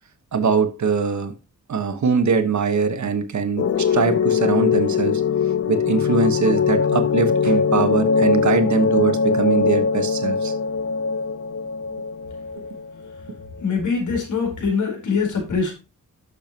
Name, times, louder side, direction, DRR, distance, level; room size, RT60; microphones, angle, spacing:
voice 1, 0.3-1.3 1.7-5.2 5.7-10.5, right 5 dB, 60° right, 1.4 m, -22 dB
sound 1, 3.6-13.7, left 6 dB, 50° left, 0.7 m, -21 dB
voice 2, 13.6-15.7, left 5 dB, 65° left, 4.2 m, -23 dB
11.5 x 7.0 x 2.9 m
wide cardioid pair, 135°, 33 cm